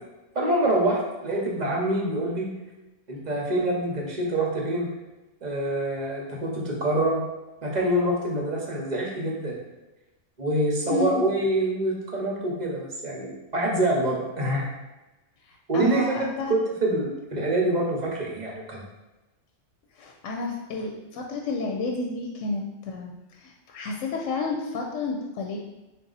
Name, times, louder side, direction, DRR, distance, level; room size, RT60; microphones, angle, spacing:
voice 1, 0.3-2.5 3.1-4.9 5.4-7.3 7.6-9.6 10.4-14.7 15.7-18.8, right 1 dB, 40° right, -2 dB, 0.8 m, -26 dB
voice 2, 10.9-11.3 15.7-16.5 20.0-23.1 23.4-25.6, left 3 dB, 75° left, 1 dB, 0.9 m, -30 dB
4.0 x 2.3 x 3.9 m, 1.1 s
omnidirectional pair, 1.3 m